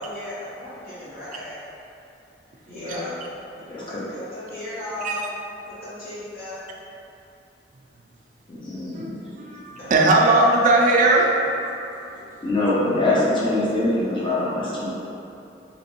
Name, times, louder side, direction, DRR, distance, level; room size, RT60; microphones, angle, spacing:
voice 1, 0.0-1.5 2.7-3.1 3.7-5.2 5.7-6.6 9.8-9.9 10.3-11.3, left 1 dB, 60° left, -11 dB, 1.3 m, -36 dB
voice 2, 2.7-3.1 3.5-4.0 8.5-9.2 12.4-14.9, left 2 dB, 30° left, -7 dB, 0.7 m, -24 dB
voice 3, 8.9-12.1, right 2 dB, 45° right, 0 dB, 0.3 m, -19 dB
3.2 x 3.0 x 2.9 m, 2.7 s
head